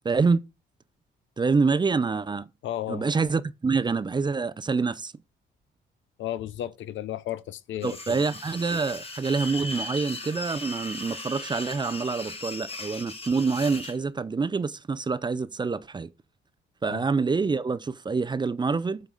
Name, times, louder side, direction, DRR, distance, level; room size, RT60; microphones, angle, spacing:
voice 1, 0.0-0.4 1.4-2.5 2.9-5.1 7.8-16.1 16.8-19.0, right 4 dB, 20° right, 0.5 m, -26 dB
voice 2, 2.6-3.1 6.2-8.2 16.9-17.0, left 12 dB, 70° left, 0.6 m, -33 dB
sound 1, 7.8-14.0, left 2 dB, 30° left, 1.6 m, -38 dB
7.3 x 4.0 x 5.0 m
cardioid pair, 90°, 20 cm